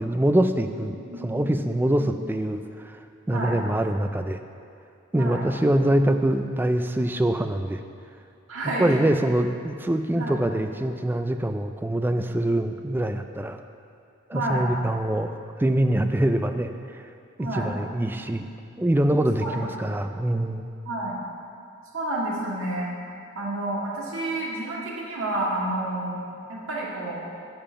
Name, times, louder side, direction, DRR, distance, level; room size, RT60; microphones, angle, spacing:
voice 1, 0.0-3.0 3.3-4.4 5.1-7.8 8.8-13.6 14.3-15.3 15.6-17.0 17.4-18.5 18.8-20.7, right 1 dB, 10° right, 7 dB, 0.3 m, -24 dB
voice 2, 1.1-1.4 3.3-3.6 5.1-5.4 8.5-9.0 10.2-10.3 14.3-14.6 17.4-17.7 19.4-19.7 20.8-21.2 21.9-22.9 23.3-26.2 26.5-27.2, right 1 dB, 65° right, -4 dB, 2.1 m, -30 dB
8.8 x 7.0 x 5.7 m, 2.4 s
head